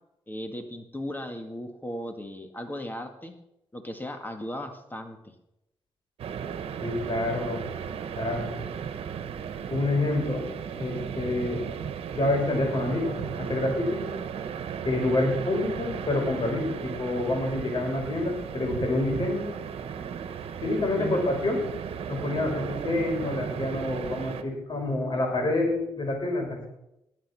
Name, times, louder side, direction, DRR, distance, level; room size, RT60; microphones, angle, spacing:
voice 1, 0.3-3.3 3.7-5.2 20.9-21.3, equal, 20° left, 5 dB, 2.1 m, -36 dB
sound 1, 6.2-24.4, right 7 dB, 80° right, 1.2 m, -35 dB
voice 2, 6.8-7.7 8.2-8.5 9.7-10.5 10.7-11.6 12.1-14.3 14.8-19.5 20.6-21.6 22.1-26.7, left 2 dB, 50° left, 1 dB, 6.3 m, -27 dB
20.5 x 7.8 x 6.3 m, 0.85 s
cardioid pair, 65°, 10 cm